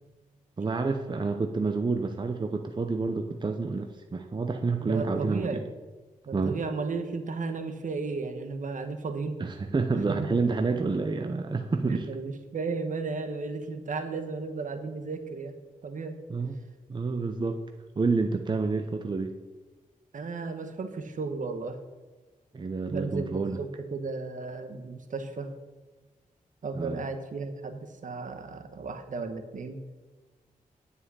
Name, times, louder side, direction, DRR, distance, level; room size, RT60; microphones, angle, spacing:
voice 1, 0.6-5.6 6.3-6.6 9.4-12.1 16.3-16.6 16.9-17.6 18.0-19.3 22.5-23.6 26.7-27.0, right 4 dB, 30° right, 5 dB, 0.7 m, -29 dB
voice 2, 4.8-5.6 6.3-9.4 10.1-10.3 11.9-15.6 15.8-16.2 20.1-21.8 22.9-25.5 26.6-29.8, right 4 dB, 65° right, 7 dB, 1.3 m, -34 dB
9.8 x 5.6 x 8.2 m, 1.3 s
wide cardioid pair, 105°, 14 cm